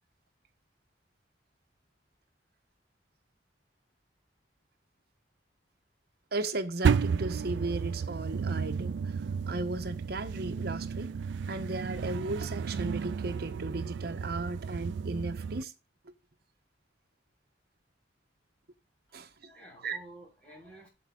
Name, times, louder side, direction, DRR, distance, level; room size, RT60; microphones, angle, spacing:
voice 1, 6.3-11.2 11.5-15.7 19.1-19.5 19.8-20.0, right 2 dB, 60° right, 1.2 m, -36 dB
sound 1, 6.8-15.6, right 6 dB, 85° right, 0.3 m, -32 dB
voice 2, 19.1-20.9, right 1 dB, 10° left, 5.6 m, -52 dB
8.1 x 7.3 x 3.9 m
head